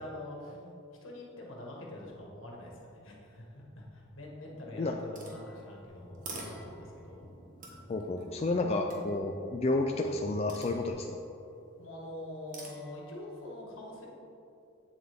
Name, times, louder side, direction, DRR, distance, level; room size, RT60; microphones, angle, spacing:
voice 1, 0.0-7.3 11.8-14.1, left 1 dB, 70° left, -2 dB, 1.8 m, -45 dB
sound 1, 5.2-7.1 7.6-9.4 10.5-11.4 12.5-13.2, right 2 dB, 40° right, 1.3 m, -48 dB
sound 2, 5.9-10.9, left 1 dB, ahead, 1.7 m, -52 dB
voice 2, 7.9-11.1, left 2 dB, 30° left, 2 dB, 0.4 m, -30 dB
8.8 x 7.5 x 3.6 m, 2.8 s
head